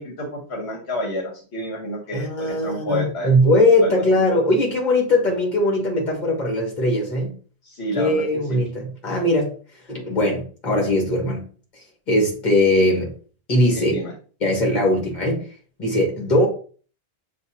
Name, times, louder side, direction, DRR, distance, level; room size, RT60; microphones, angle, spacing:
voice 1, 0.0-3.3 3.8-3.9 7.6-8.2 8.5-8.6 13.8-14.1, left 1 dB, 75° left, 0 dB, 1.2 m, -29 dB
voice 2, 2.1-7.4 7.9-9.6 9.9-11.4 12.1-13.1 13.5-14.0 14.4-15.5 15.8-16.5, left 1 dB, 45° left, 0 dB, 1.5 m, -20 dB
6.9 x 2.3 x 2.8 m, 0.41 s
omnidirectional pair, 1.1 m